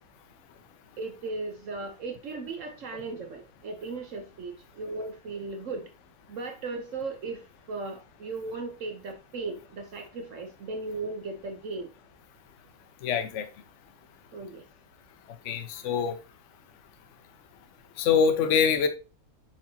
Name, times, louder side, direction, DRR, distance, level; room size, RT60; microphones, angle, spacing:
voice 1, 1.0-5.9 6.3-7.4 7.7-11.9 14.3-14.6, right 3 dB, 80° right, 0.6 m, -36 dB
voice 2, 13.0-13.5 15.4-16.2 18.0-18.9, left 6 dB, 85° left, 0.6 m, -24 dB
7.3 x 4.8 x 2.7 m
omnidirectional pair, 2.4 m